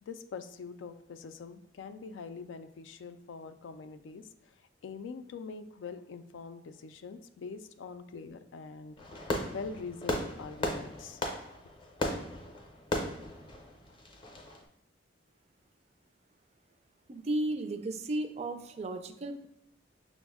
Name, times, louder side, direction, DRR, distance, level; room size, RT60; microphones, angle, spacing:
voice 1, 0.0-9.0 9.5-11.2, left 5 dB, 90° left, 10 dB, 0.3 m, -44 dB
Fireworks, 9.0-14.6, left 1 dB, 30° left, 0.6 m, -36 dB
voice 2, 17.1-19.5, right 1 dB, 35° right, 8 dB, 0.3 m, -34 dB
6.0 x 2.1 x 3.4 m, 0.78 s
head